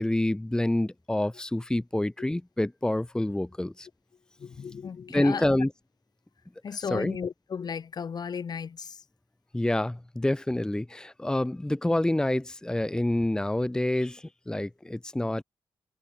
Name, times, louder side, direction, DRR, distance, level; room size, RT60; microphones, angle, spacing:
voice 1, 0.0-3.9 5.1-5.7 6.9-7.2 9.5-15.4, left 1 dB, 10° left, 1.4 m, -27 dB
voice 2, 4.4-5.5 6.6-9.0, left 6 dB, 50° left, 3.0 m, -35 dB
wide cardioid pair, 130°, 9 cm